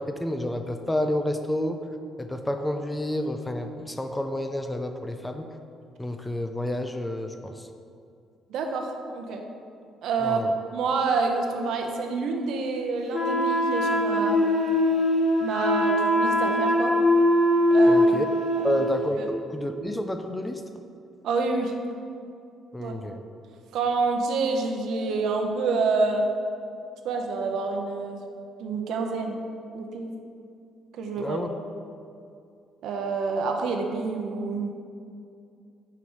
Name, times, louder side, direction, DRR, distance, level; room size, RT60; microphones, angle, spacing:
voice 1, 0.0-1.8 2.2-5.5 6.0-7.7 10.2-10.5 17.9-18.3 18.6-20.6 22.7-23.2 31.2-31.5, left 1 dB, 10° left, 6 dB, 0.4 m, -29 dB
voice 2, 8.5-9.4 10.0-10.4 10.7-14.5 15.4-16.9 17.7-18.1 18.6-18.7 19.2-19.3 21.2-21.7 22.8-22.9 23.7-26.3 27.0-28.2 28.6-29.4 29.7-30.1 31.0-31.4 32.8-34.7, right 4 dB, 75° right, 3 dB, 0.7 m, -27 dB
Wind instrument woodwind instrument, 13.1-19.1, left 1 dB, 35° left, 1.0 m, -22 dB
4.9 x 4.6 x 5.4 m, 2.4 s
cardioid pair, 120°, 0 cm